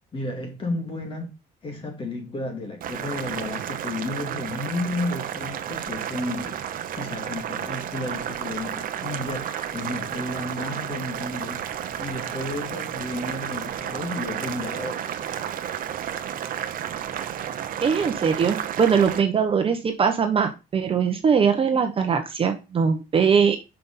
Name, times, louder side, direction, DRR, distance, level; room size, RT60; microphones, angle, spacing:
voice 1, 0.1-1.3 1.6-11.6 12.0-15.2, left 2 dB, 30° left, 2.5 m, -32 dB
Boiling, 2.8-19.2, right 9 dB, 50° right, 0.8 m, -32 dB
voice 2, 17.8-23.6, right 6 dB, 30° right, 1.0 m, -21 dB
6.0 x 5.8 x 5.5 m
cardioid pair, 155°, 18 cm